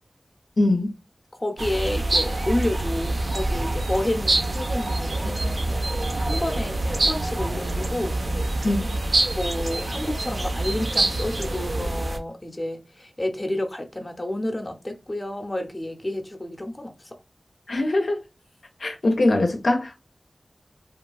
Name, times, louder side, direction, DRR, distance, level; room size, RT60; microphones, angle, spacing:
voice 1, 0.6-0.9 8.6-8.9 17.7-18.2 18.8-20.0, left 2 dB, 75° left, 0.5 m, -22 dB
voice 2, 1.4-5.4 6.2-8.6 9.3-17.2, left 1 dB, 25° left, 0.6 m, -30 dB
sound 1, 1.6-12.2, right 2 dB, 70° right, 0.5 m, -26 dB
2.9 x 2.2 x 2.3 m
wide cardioid pair, 60°, 0 cm